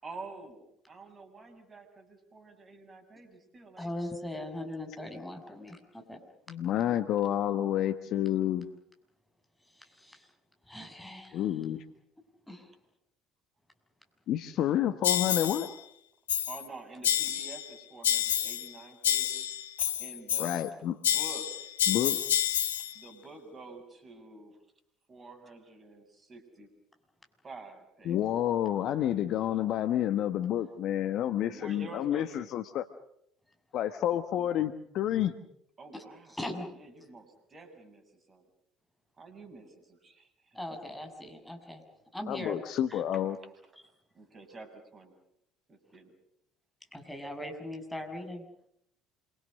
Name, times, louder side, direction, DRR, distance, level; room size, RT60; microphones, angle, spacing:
voice 1, 0.0-4.0 7.2-7.3 16.5-19.5 19.8-20.9 21.1-21.7 22.7-24.6 25.1-26.7 27.4-28.2 31.4-32.5 35.8-36.4 36.7-38.5 39.2-40.6 43.1-43.2 44.1-45.2 45.7-46.1, right 2 dB, 30° right, 6 dB, 6.9 m, -48 dB
voice 2, 3.8-6.2 9.7-10.3 10.7-11.5 12.5-12.7 35.9-36.0 36.3-36.7 40.5-41.8 42.1-42.6 42.9-43.0 46.9-48.4, left 1 dB, 5° left, 4 dB, 6.9 m, -40 dB
voice 3, 6.5-8.7 11.3-11.8 14.3-15.7 20.4-21.0 21.9-22.2 28.0-32.9 33.7-35.3 42.3-43.4, left 11 dB, 55° left, 10 dB, 1.2 m, -29 dB
sound 1, 15.0-15.7 16.3-16.7 17.0-17.7 18.0-18.7 19.0-20.7 21.0-22.9, left 11 dB, 80° left, 1.0 m, -29 dB
27.5 x 25.0 x 6.5 m, 0.74 s
hypercardioid pair, 60°, 0 cm